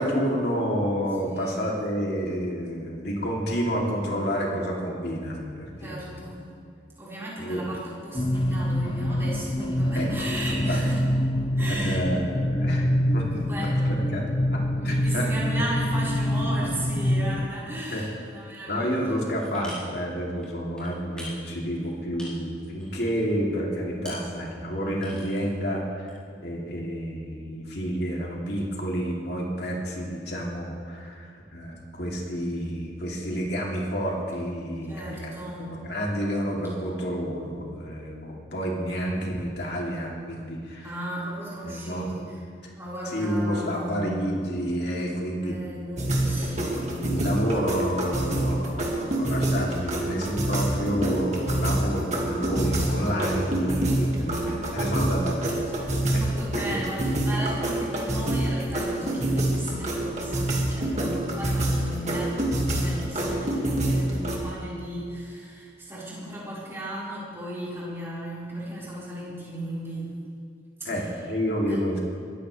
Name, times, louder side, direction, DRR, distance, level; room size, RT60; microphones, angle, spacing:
voice 1, 0.0-6.2 7.4-7.6 9.9-10.8 11.7-13.3 13.9-14.2 14.5-15.3 17.6-18.0 18.7-35.3 35.6-40.9 41.6-42.3 43.1-45.5 46.1-55.6 56.1-56.2 56.5-56.8 70.8-72.0, equal, 65° left, -2 dB, 2.9 m, -30 dB
voice 2, 1.2-1.8 5.8-6.5 7.0-11.0 11.6-12.1 13.4-13.8 14.8-19.2 34.9-35.7 40.8-42.4 42.7-44.1 45.4-46.7 54.1-54.6 56.1-70.1 70.8-71.1 71.7-71.8, right 1 dB, 15° right, -9 dB, 4.7 m, -36 dB
sound 1, 8.1-17.5, left 1 dB, 25° left, 0.6 m, -25 dB
sound 2, 19.4-20.1 20.4-23.4 23.7-24.4 24.7-25.6 26.1-26.3, left 1 dB, 5° left, 4.4 m, -44 dB
sound 3, 46.0-64.4, right 1 dB, 40° right, 2.1 m, -27 dB
23.0 x 14.0 x 3.4 m, 2.2 s
head